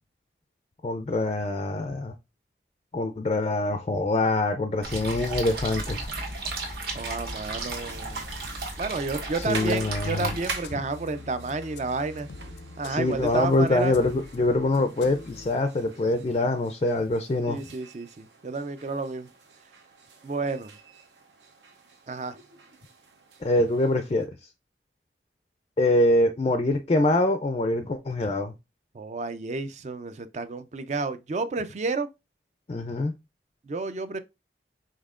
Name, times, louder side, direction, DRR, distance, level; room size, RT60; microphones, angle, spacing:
voice 1, 0.8-2.1 2.9-6.0 9.3-10.3 12.9-17.6 23.4-24.3 25.8-28.5 32.7-33.1, left 2 dB, 35° left, 0.4 m, -24 dB
sound 1, 4.8-10.5, right 2 dB, 65° right, 1.5 m, -34 dB
sound 2, 5.6-24.2, right 4 dB, 85° right, 1.0 m, -46 dB
voice 2, 6.9-8.3 8.8-12.3 12.8-14.0 17.5-19.3 20.2-20.7 22.1-22.4 28.9-32.1 33.7-34.2, right 3 dB, 40° right, 0.4 m, -31 dB
sound 3, 9.9-15.5, left 2 dB, 85° left, 0.5 m, -44 dB
5.3 x 3.6 x 2.4 m
head